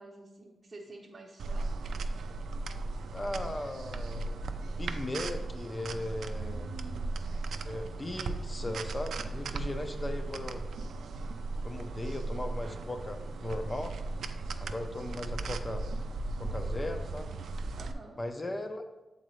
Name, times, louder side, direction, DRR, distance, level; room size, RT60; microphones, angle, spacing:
voice 1, 0.0-2.0 6.3-7.2 17.8-18.2, right 2 dB, 30° right, -4 dB, 0.7 m, -49 dB
sound 1, 1.4-17.9, right 3 dB, 85° right, 0.3 m, -36 dB
voice 2, 3.1-6.7 7.6-10.6 11.6-13.9 14.6-15.9 16.4-17.3 18.2-18.8, left 1 dB, 20° left, 7 dB, 0.5 m, -38 dB
7.7 x 3.9 x 3.1 m, 1.1 s
wide cardioid pair, 120°, 0 cm